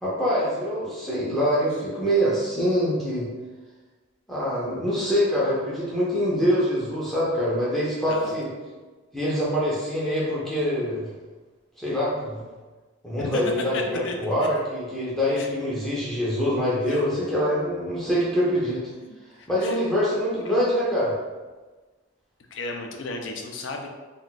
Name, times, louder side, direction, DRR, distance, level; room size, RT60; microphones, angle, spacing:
voice 1, 0.0-3.3 4.3-8.5 9.1-11.1 11.8-12.5 13.0-18.8 19.5-21.1, equal, ahead, -8 dB, 0.6 m, -24 dB
voice 2, 13.7-14.3 15.4-15.5 16.9-17.0 19.1-19.8 20.4-20.5 22.5-23.9, left 2 dB, 65° left, 3 dB, 0.4 m, -34 dB
2.4 x 2.2 x 3.9 m, 1.3 s
head